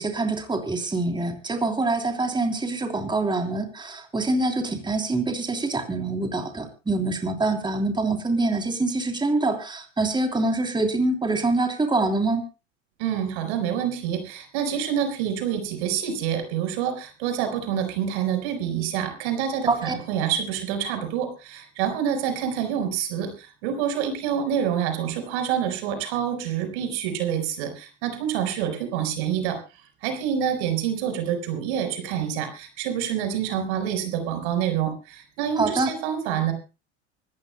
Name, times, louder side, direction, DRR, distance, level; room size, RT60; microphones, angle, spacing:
voice 1, 0.0-12.4 19.7-20.0 35.6-35.9, right 2 dB, 15° right, 5 dB, 3.1 m, -25 dB
voice 2, 13.0-23.3 23.6-29.6 30.0-36.5, right 9 dB, 70° right, 8 dB, 4.7 m, -27 dB
25.0 x 14.0 x 2.2 m, 0.31 s
hypercardioid pair, 85°, 35 cm